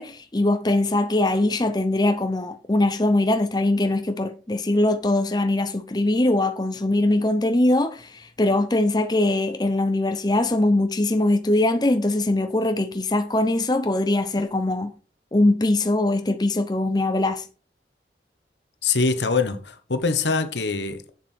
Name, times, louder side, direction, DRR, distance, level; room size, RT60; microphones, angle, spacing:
voice 1, 0.0-14.9 15.3-17.4, left 2 dB, 25° left, 0.6 m, -22 dB
voice 2, 18.8-21.1, left 4 dB, 90° left, 1.2 m, -23 dB
7.4 x 7.2 x 4.5 m
head